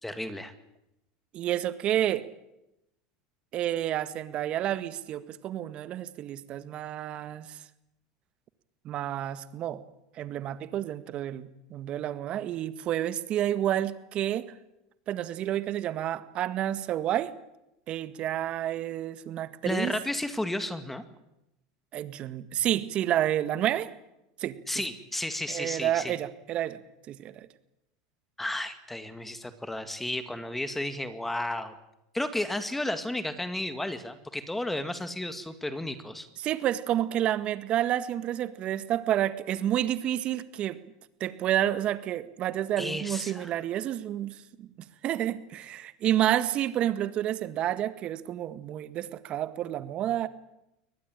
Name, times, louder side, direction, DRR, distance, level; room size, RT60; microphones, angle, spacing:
voice 1, 0.0-0.5 19.6-21.0 24.7-26.2 28.4-31.7 32.1-36.3 42.8-43.5, left 1 dB, 5° left, 10 dB, 2.1 m, -33 dB
voice 2, 1.3-2.2 3.5-7.6 8.9-9.8 10.2-14.5 15.1-17.3 17.9-19.9 21.9-23.9 24.4-24.6 25.5-26.8 27.1-27.5 36.4-40.8 41.2-50.3, right 12 dB, 45° right, 13 dB, 1.8 m, -29 dB
23.5 x 19.5 x 9.1 m, 0.88 s
hypercardioid pair, 100°, 3 cm